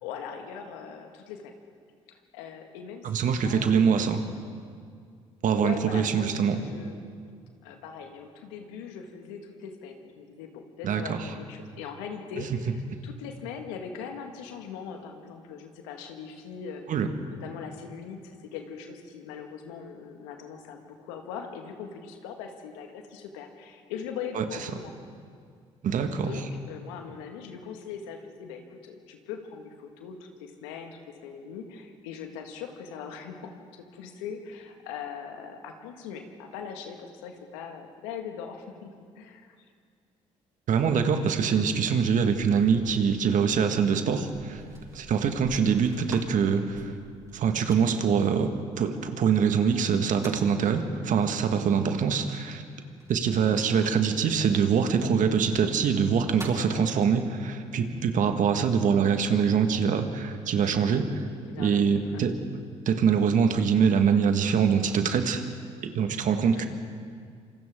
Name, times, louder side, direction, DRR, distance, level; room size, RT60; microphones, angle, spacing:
voice 1, 0.0-1.6 2.1-4.1 5.5-7.0 7.6-16.8 17.4-24.9 26.1-39.6 41.5-41.7 56.7-57.0 58.4-58.5 61.5-62.2 66.5-66.7, left 6 dB, 80° left, 4 dB, 2.0 m, -41 dB
voice 2, 3.0-4.2 5.4-6.6 10.8-11.3 12.4-12.6 16.9-17.1 24.4-24.5 25.8-26.4 40.7-44.6 44.9-46.9 47.3-52.6 53.1-61.2 61.6-62.4 62.9-65.4 65.8-66.7, right 6 dB, 60° right, 7 dB, 1.8 m, -24 dB
sound 1, 41.8-49.2 49.8-50.6 53.0-54.3 55.3-55.4 56.0-56.8, right 2 dB, 20° right, 6.3 m, -49 dB
27.0 x 25.5 x 3.8 m, 2.2 s
hypercardioid pair, 50°, 15 cm